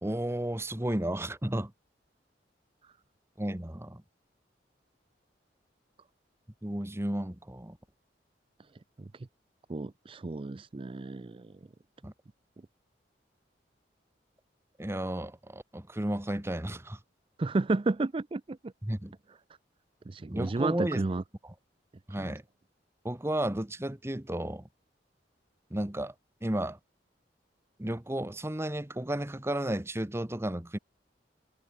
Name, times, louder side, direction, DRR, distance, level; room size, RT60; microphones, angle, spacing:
voice 1, 0.0-1.7 3.4-4.0 6.6-7.8 12.0-12.1 14.8-17.0 18.8-19.1 20.3-21.0 22.1-22.4 23.0-24.6 25.7-26.1 26.4-26.8 27.8-30.8, right 1 dB, 15° right, 1.2 m, -33 dB
voice 2, 9.7-11.6 17.4-18.7 20.1-21.2 22.1-22.3, right 3 dB, 30° right, 0.4 m, -32 dB
head